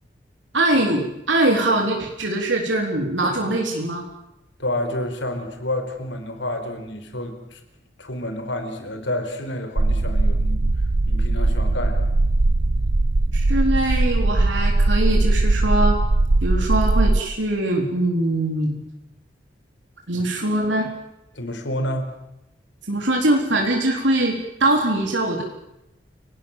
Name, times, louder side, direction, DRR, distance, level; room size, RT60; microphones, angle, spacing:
voice 1, 0.5-4.0 13.3-16.0 16.4-18.8 20.1-20.9 22.9-25.4, right 1 dB, 80° right, 1 dB, 3.9 m, -22 dB
voice 2, 4.6-7.6 8.0-10.7 11.1-12.1 21.3-22.1, left 1 dB, 75° left, 7 dB, 4.6 m, -29 dB
sound 1, 9.8-17.2, right 2 dB, 65° right, 0.8 m, -19 dB
30.0 x 18.5 x 7.4 m, 0.88 s
head